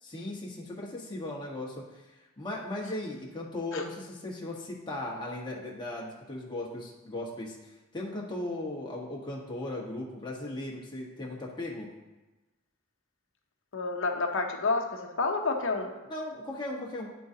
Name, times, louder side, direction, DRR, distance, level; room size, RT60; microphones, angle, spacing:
voice 1, 0.0-11.9 16.1-17.1, left 1 dB, 20° left, -3 dB, 1.2 m, -37 dB
voice 2, 13.7-15.9, left 3 dB, 60° left, 3 dB, 0.8 m, -29 dB
11.0 x 3.8 x 2.7 m, 1.1 s
head